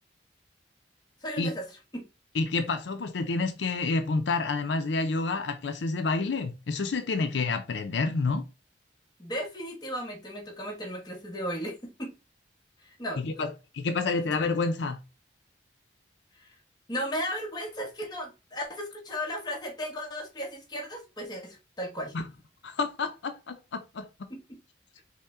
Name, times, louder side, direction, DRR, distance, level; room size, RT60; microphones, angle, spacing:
voice 1, 1.2-1.6 1.9-2.0 9.2-12.1 13.0-13.4 16.4-16.5 16.9-22.1 24.3-24.4, equal, 25° left, 1.1 m, -35 dB
voice 2, 2.3-8.4 13.2-15.0 22.1-22.2 22.6-24.3, left 3 dB, 80° left, 0.5 m, -29 dB
5.5 x 2.2 x 3.5 m
head